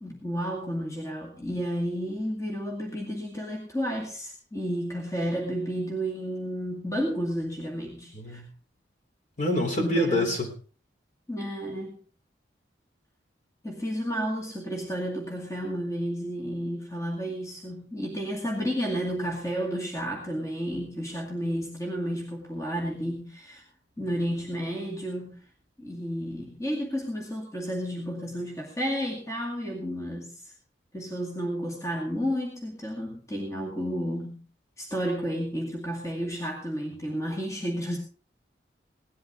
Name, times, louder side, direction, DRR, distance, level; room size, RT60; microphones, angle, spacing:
voice 1, 0.0-8.4 9.8-10.4 11.3-12.0 13.6-23.6 24.0-25.4 25.8-30.5 30.9-34.4 34.8-38.0, equal, 15° left, -1 dB, 2.3 m, -32 dB
voice 2, 8.1-8.5 9.4-10.5, left 1 dB, 40° left, 2 dB, 3.7 m, -26 dB
18.0 x 12.0 x 3.8 m, 0.38 s
head